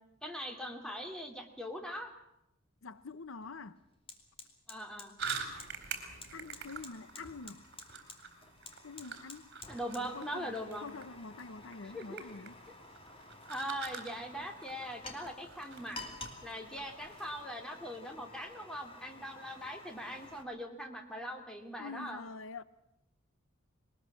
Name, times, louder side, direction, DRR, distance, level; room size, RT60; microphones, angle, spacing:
voice 1, 0.2-2.1 4.7-5.1 9.7-10.9 11.9-12.2 13.5-16.0 16.4-22.2, equal, 5° left, 2.7 m, -41 dB
voice 2, 2.8-3.8 6.3-7.7 8.8-9.4 10.1-10.5 10.8-12.6 21.8-22.6, left 4 dB, 75° left, 0.8 m, -46 dB
Fire, 2.9-3.1 3.4-20.4, left 2 dB, 25° left, 2.7 m, -52 dB
sound 1, 5.2-17.4, right 5 dB, 55° right, 4.0 m, -46 dB
21.5 x 20.0 x 7.3 m
head